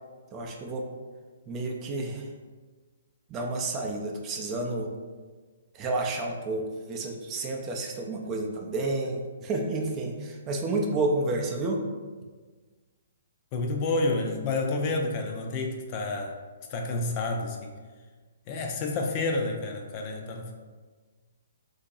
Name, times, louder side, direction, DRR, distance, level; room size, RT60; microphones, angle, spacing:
voice 1, 0.3-0.9 1.5-2.3 3.3-4.9 5.7-11.8, right 2 dB, 25° right, 1 dB, 0.5 m, -30 dB
voice 2, 13.5-16.3 16.7-17.7 18.5-20.5, left 2 dB, 35° left, 2 dB, 0.4 m, -29 dB
2.8 x 2.8 x 3.8 m, 1.4 s
hypercardioid pair, 145°, 0 cm